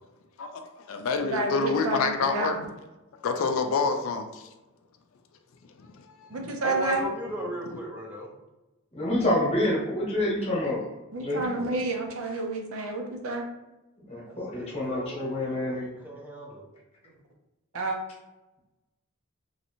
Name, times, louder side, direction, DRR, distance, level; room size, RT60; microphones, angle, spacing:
voice 1, 0.4-2.6 3.2-4.4 6.3-6.6, left 4 dB, 65° left, 0.3 m, -27 dB
voice 2, 1.2-2.6 6.3-7.0 11.1-13.5 17.7-18.0, right 2 dB, 70° right, 0.6 m, -30 dB
voice 3, 6.6-8.3 14.3-16.6, equal, 10° right, 0.4 m, -37 dB
voice 4, 8.9-10.8 11.2-11.5 14.1-15.9, left 1 dB, 30° left, 1.0 m, -27 dB
3.1 x 2.6 x 2.8 m
head